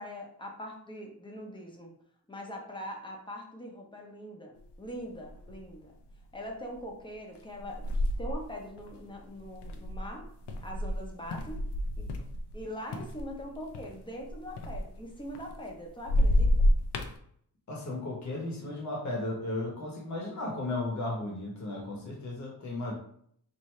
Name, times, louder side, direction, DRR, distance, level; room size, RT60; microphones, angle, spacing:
voice 1, 0.0-1.9 2.3-5.9 6.3-10.3 10.6-11.7 12.0-12.1 12.5-16.7, equal, 10° left, 1 dB, 0.7 m, -42 dB
sound 1, 4.7-4.8 5.2-5.7 6.2-6.5 7.4-12.6 12.9-15.7 16.0-17.2, left 1 dB, 90° left, 0.7 m, -29 dB
voice 2, 17.7-22.9, left 2 dB, 45° left, -1 dB, 1.0 m, -35 dB
4.7 x 2.6 x 3.1 m, 0.65 s
wide cardioid pair, 155°, 40 cm